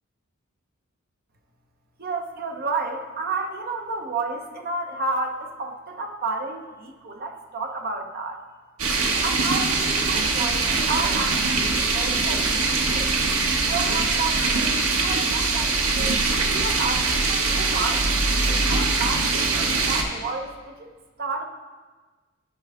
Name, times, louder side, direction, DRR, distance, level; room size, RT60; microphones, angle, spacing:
voice 1, 2.0-8.4 9.2-12.5 12.8-13.1 13.7-18.1 18.6-20.9 21.2-21.5, right 3 dB, 45° right, 4 dB, 0.8 m, -31 dB
sound 1, 8.8-20.0, right 3 dB, 80° right, 0.9 m, -22 dB
13.0 x 4.7 x 3.5 m, 1.4 s
head